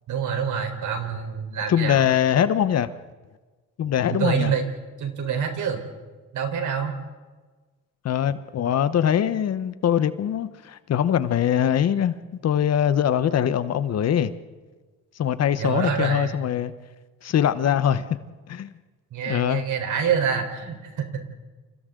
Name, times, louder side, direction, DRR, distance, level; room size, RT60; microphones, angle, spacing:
voice 1, 0.1-2.0 4.1-4.6 5.0-5.8 6.3-6.9 15.6-16.4 19.1-21.3, right 7 dB, 65° right, 4.2 m, -26 dB
voice 2, 1.7-2.9 3.8-4.5 8.0-12.1 12.4-14.3 15.2-16.7 17.2-18.0 18.5-18.7 19.3-19.6, left 9 dB, 50° left, 1.0 m, -22 dB
29.5 x 28.0 x 3.9 m
cardioid pair, 110°, 33 cm